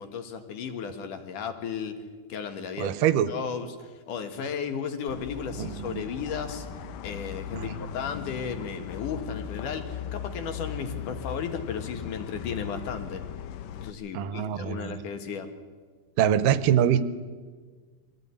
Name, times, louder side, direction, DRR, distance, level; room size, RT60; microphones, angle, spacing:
voice 1, 0.0-2.0 2.3-2.9 3.3-6.7 7.0-13.2 13.7-15.5, left 6 dB, 70° left, 7 dB, 3.0 m, -34 dB
voice 2, 2.8-3.3 5.6-6.0 7.5-7.8 14.1-15.0 16.2-17.0, right 10 dB, 80° right, 13 dB, 2.4 m, -24 dB
sound 1, 5.1-13.9, left 9 dB, 85° left, 2.6 m, -38 dB
22.0 x 15.0 x 9.6 m, 1.5 s
omnidirectional pair, 3.9 m